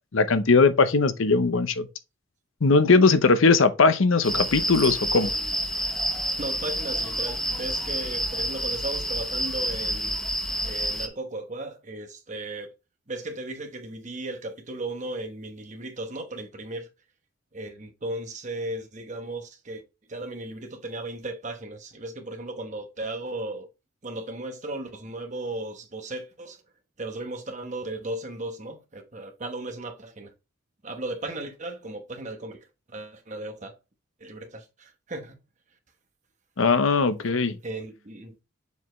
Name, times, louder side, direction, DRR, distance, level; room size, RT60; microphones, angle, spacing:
voice 1, 0.1-1.9 2.6-5.3 36.6-37.6, left 4 dB, 70° left, 0.7 m, -20 dB
sound 1, 4.2-11.1, equal, ahead, 0.7 m, -29 dB
voice 2, 6.4-10.2 10.6-12.7 13.1-16.9 17.5-19.8 20.1-23.7 24.0-26.6 27.0-30.3 30.8-32.6 32.9-33.7 34.2-35.4 37.6-38.3, right 2 dB, 35° right, 1.1 m, -36 dB
7.0 x 4.3 x 3.1 m
head